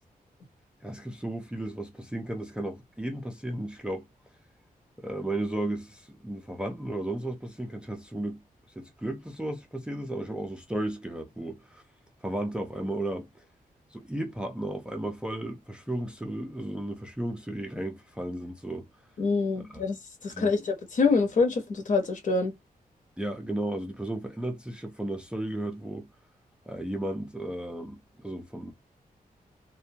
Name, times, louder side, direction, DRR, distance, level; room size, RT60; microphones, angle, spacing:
voice 1, 0.8-4.1 5.0-8.4 8.8-11.8 12.2-13.4 13.9-18.8 19.7-19.8 20.3-20.5 23.2-26.1 26.7-28.7, right 1 dB, 5° right, 0.4 m, -34 dB
voice 2, 19.2-22.5, left 4 dB, 55° left, 0.8 m, -26 dB
2.5 x 2.1 x 2.7 m
wide cardioid pair, 180°, 15 cm